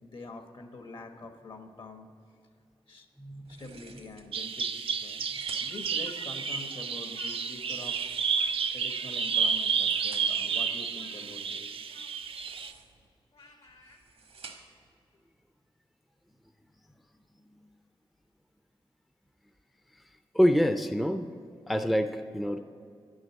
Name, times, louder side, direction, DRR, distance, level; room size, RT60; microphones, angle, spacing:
voice 1, 0.0-2.1 2.9-3.1 3.5-5.3 5.6-8.0 8.7-11.9, left 3 dB, 60° left, 5 dB, 1.1 m, -45 dB
voice 2, 3.2-3.6 20.3-21.3 21.7-22.6, equal, ahead, 8 dB, 0.4 m, -26 dB
sound 1, 3.4-4.3 4.9-5.9 7.5-8.6 9.4-10.5 12.2-13.1 13.7-14.9, right 4 dB, 85° right, 1.3 m, -52 dB
Bird vocalization bird call bird song, 4.3-12.7, right 6 dB, 70° right, 0.4 m, -31 dB
Speech, 5.7-7.7 8.0-14.0, left 4 dB, 75° left, 1.7 m, -56 dB
11.0 x 6.3 x 8.7 m, 2.4 s
wide cardioid pair, 115°, 10 cm